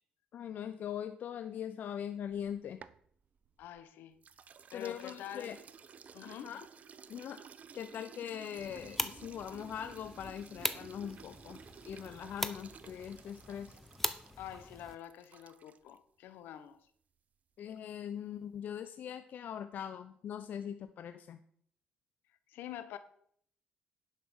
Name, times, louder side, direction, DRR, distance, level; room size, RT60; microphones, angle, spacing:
voice 1, 0.3-2.8 4.7-5.6 6.2-6.6 7.1-7.5 7.7-13.8 17.6-21.4, left 9 dB, 60° left, 0.6 m, -41 dB
sound 1, 2.2-3.8 4.2-16.0, right 6 dB, 45° right, 0.6 m, -55 dB
voice 2, 3.6-4.2 4.7-5.6 6.1-6.5 14.4-16.8 22.5-23.0, left 11 dB, 80° left, 1.0 m, -46 dB
sound 2, 8.6-15.0, left 1 dB, 5° left, 1.0 m, -41 dB
10.5 x 5.8 x 6.3 m
cardioid pair, 80°, 3 cm